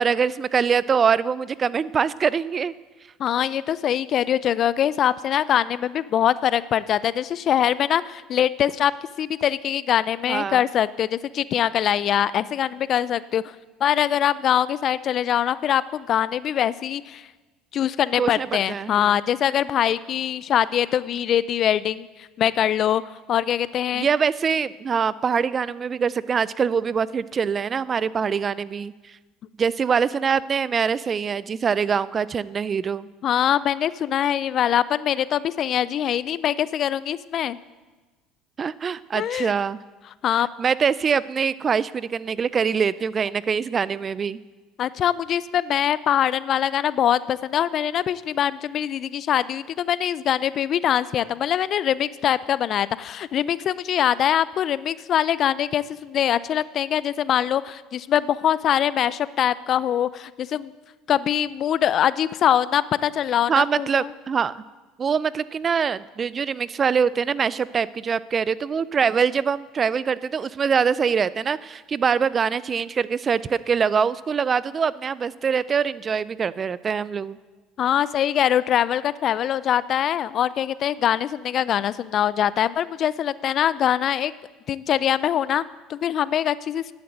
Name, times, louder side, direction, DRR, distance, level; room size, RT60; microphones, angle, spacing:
voice 1, 0.0-2.7 10.3-10.6 18.2-19.1 23.9-28.9 29.6-33.1 38.6-39.8 40.6-44.4 63.5-64.6 65.0-77.4, right 6 dB, 35° right, 19 dB, 0.4 m, -23 dB
voice 2, 3.2-8.9 9.2-13.5 13.8-17.3 17.7-22.1 22.4-23.0 23.3-24.1 33.2-37.6 39.1-39.5 40.2-40.5 44.8-60.7 61.1-64.1 77.8-84.3 84.7-85.6 85.9-86.8, left 10 dB, 50° left, 18 dB, 0.4 m, -23 dB
11.0 x 8.8 x 7.9 m, 1.2 s
hypercardioid pair, 75°, 0 cm